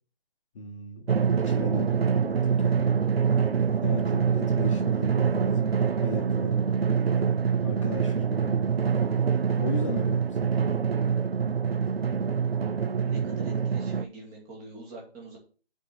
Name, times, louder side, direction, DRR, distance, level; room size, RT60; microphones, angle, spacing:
voice 1, 0.5-1.2 1.4-3.0 3.8-5.7 6.0-6.6 7.6-8.6 9.6-10.7, left 3 dB, 30° left, 3 dB, 1.2 m, -37 dB
Drum, 1.1-14.0, right 6 dB, 75° right, 0.7 m, -25 dB
voice 2, 13.0-15.4, right 2 dB, 15° right, -2 dB, 2.0 m, -43 dB
6.5 x 4.6 x 6.4 m, 0.39 s
figure-of-eight pair, 155°, 30 cm